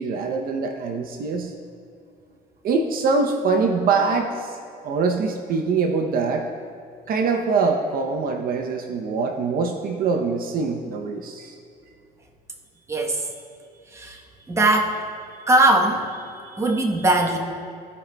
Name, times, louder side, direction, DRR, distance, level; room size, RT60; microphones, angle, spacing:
voice 1, 0.0-1.5 2.6-4.5 4.8-6.5 7.1-11.5, right 4 dB, 60° right, 3 dB, 0.7 m, -23 dB
voice 2, 12.9-13.2 13.9-14.2 14.5-15.0 15.5-16.0 16.4-17.4, right 2 dB, 15° right, 0 dB, 1.0 m, -20 dB
16.0 x 5.3 x 2.2 m, 2.5 s
cardioid pair, 110°, 17 cm